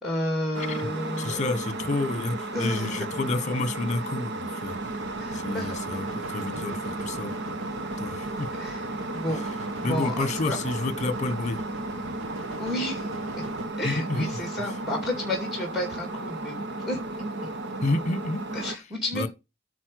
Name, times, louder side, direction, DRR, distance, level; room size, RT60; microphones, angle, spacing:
voice 1, 0.0-1.5 2.5-3.0 5.2-5.7 8.6-8.9 9.1-9.4 9.8-10.6 12.6-13.1 13.4-13.5 13.8-17.0 18.5-19.3, left 1 dB, ahead, 2.5 m, -31 dB
sound 1, 0.5-18.8, right 2 dB, 60° right, 1.1 m, -34 dB
voice 2, 1.2-4.9 5.3-7.6 8.0-8.5 9.3-9.5 9.8-11.6 13.8-14.7 17.8-18.9 19.1-19.3, left 2 dB, 35° left, 1.3 m, -30 dB
sound 2, 4.6-13.7, right 2 dB, 80° right, 1.7 m, -41 dB
9.7 x 4.2 x 6.5 m
head